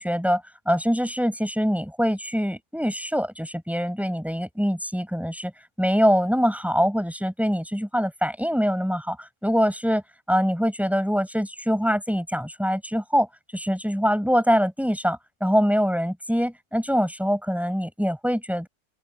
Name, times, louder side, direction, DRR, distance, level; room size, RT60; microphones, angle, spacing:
voice 1, 0.0-5.5 5.8-10.0 10.3-13.3 13.5-18.7, equal, ahead, 6.1 m, -24 dB
open air
omnidirectional pair, 1.8 m